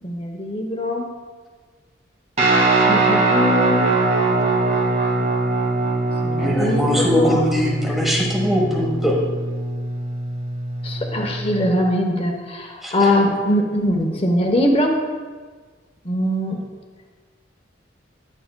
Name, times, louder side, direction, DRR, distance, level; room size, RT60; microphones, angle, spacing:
voice 1, 0.0-1.1 2.9-3.9 6.2-7.4 10.8-15.0 16.0-16.6, left 1 dB, 30° left, 3 dB, 0.9 m, -21 dB
Guitar, 2.4-11.7, right 2 dB, 35° right, 1.4 m, -21 dB
voice 2, 6.4-9.2 12.8-13.1, equal, ahead, -2 dB, 1.1 m, -21 dB
11.0 x 8.0 x 2.2 m, 1.5 s
head